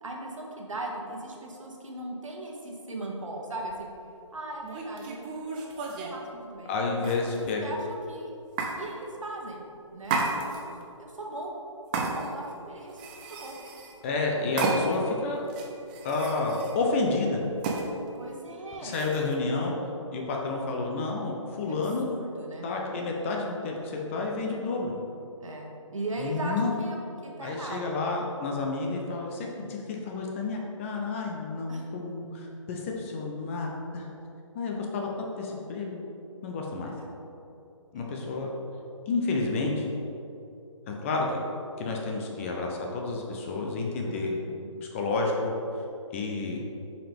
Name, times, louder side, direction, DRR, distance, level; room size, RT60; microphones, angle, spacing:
voice 1, 0.0-3.9 4.3-5.8 6.1-6.7 7.4-8.3 8.8-9.6 9.9-10.7 11.0-11.6 12.0-13.0 13.3-13.6 18.1-19.0 21.7-23.2 25.4-27.0 27.2-28.0 31.7-31.8 37.0-37.1 37.9-38.2 44.0-44.5, right 2 dB, 75° right, 0 dB, 1.3 m, -38 dB
sound 1, 3.7-3.9 4.6-6.2 7.0-7.6 8.6-8.8 10.0-10.8 11.9-12.5 12.9-14.0 14.6-15.1 15.5-16.8 17.6-17.9 18.9-19.3, right 4 dB, 15° right, 0.4 m, -32 dB
voice 2, 6.7-7.6 14.0-15.4 16.0-17.4 18.8-19.8 20.1-22.1 22.6-25.0 26.2-26.7 27.4-34.1 34.5-35.1 35.4-36.0 36.4-36.9 37.9-38.5 39.1-39.9 40.9-41.3 41.8-44.3 44.9-45.5 46.1-46.6, left 3 dB, 25° left, 0 dB, 0.7 m, -30 dB
7.1 x 5.1 x 3.5 m, 2.7 s
figure-of-eight pair, 145°, 17 cm